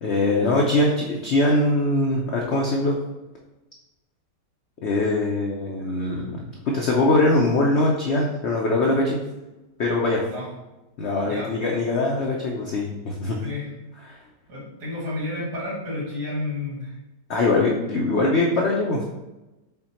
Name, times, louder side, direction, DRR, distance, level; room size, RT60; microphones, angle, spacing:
voice 1, 0.0-3.0 4.8-6.3 6.7-9.2 9.8-10.2 11.0-13.4 17.3-19.0, left 2 dB, 85° left, -1 dB, 0.6 m, -22 dB
voice 2, 13.4-13.7 14.5-16.9 17.3-17.5, left 2 dB, 65° right, -5 dB, 2.2 m, -31 dB
5.7 x 2.2 x 4.1 m, 1.0 s
omnidirectional pair, 1.9 m